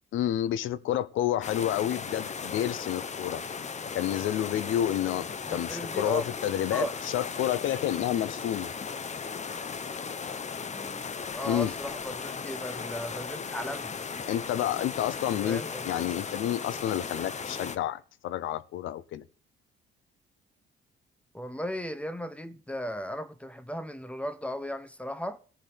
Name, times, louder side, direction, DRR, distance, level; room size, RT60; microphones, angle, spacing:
voice 1, 0.1-3.4 3.9-6.9 7.1-8.7 11.5-11.7 14.3-19.2, left 12 dB, 80° left, 0.8 m, -29 dB
sound 1, 1.4-17.8, left 5 dB, 35° left, 1.0 m, -37 dB
voice 2, 5.5-6.2 6.7-6.9 10.7-11.0 11.3-13.9 15.4-15.9 21.3-25.4, equal, 5° left, 0.9 m, -36 dB
14.5 x 4.9 x 8.7 m
cardioid pair, 90°, 20 cm